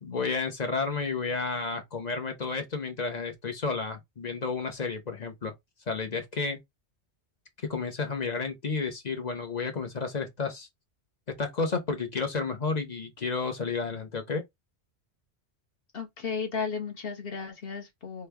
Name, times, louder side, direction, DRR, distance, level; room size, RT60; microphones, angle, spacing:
voice 1, 0.0-5.5 5.9-6.6 7.7-10.7 11.4-14.4, left 4 dB, 40° left, 1.0 m, -31 dB
voice 2, 15.9-18.3, left 5 dB, 60° left, 1.3 m, -34 dB
3.3 x 3.2 x 3.4 m
omnidirectional pair, 1.1 m